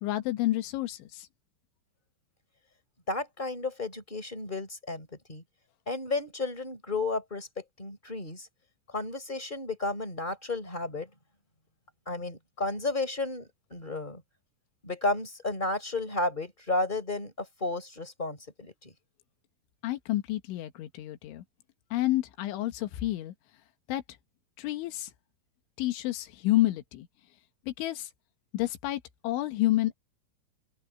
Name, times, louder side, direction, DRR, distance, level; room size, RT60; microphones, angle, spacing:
voice 1, 0.0-1.3 19.8-21.4 21.9-23.3 23.9-24.0 24.6-25.1 25.8-27.1 27.7-28.1 28.5-29.9, left 16 dB, 85° left, 3.8 m, -29 dB
voice 2, 3.1-5.4 5.9-8.5 8.9-11.1 12.1-14.2 14.8-18.9, left 2 dB, 10° left, 3.7 m, -33 dB
open air
omnidirectional pair, 5.4 m